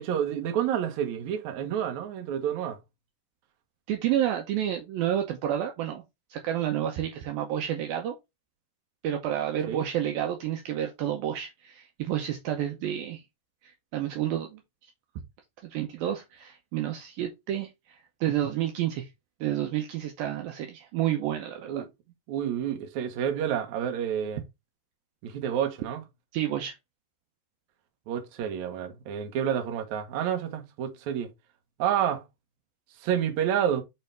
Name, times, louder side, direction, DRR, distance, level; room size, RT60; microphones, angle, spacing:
voice 1, 0.0-2.8 9.7-9.9 21.7-21.9 22.3-24.4 25.2-26.0 28.1-31.3 31.8-32.2 33.0-33.8, right 9 dB, 70° right, 1.8 m, -29 dB
voice 2, 3.9-6.0 6.3-8.2 9.0-13.2 13.6-14.6 15.7-19.1 19.4-21.8 26.3-26.7, right 11 dB, 85° right, 2.1 m, -30 dB
6.8 x 4.7 x 3.4 m
omnidirectional pair, 5.3 m